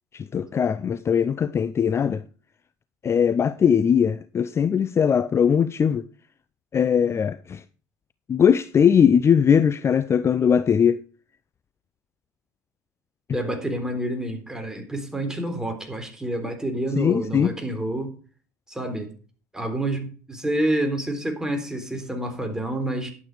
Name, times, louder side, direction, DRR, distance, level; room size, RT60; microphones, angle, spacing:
voice 1, 0.1-2.2 3.0-6.0 6.7-7.6 8.3-11.0 17.0-17.5, left 7 dB, 30° left, 0.6 m, -20 dB
voice 2, 13.3-18.1 18.7-19.1 19.5-23.1, right 1 dB, 5° right, 3.8 m, -28 dB
11.5 x 8.3 x 5.0 m
hypercardioid pair, 80°, 9 cm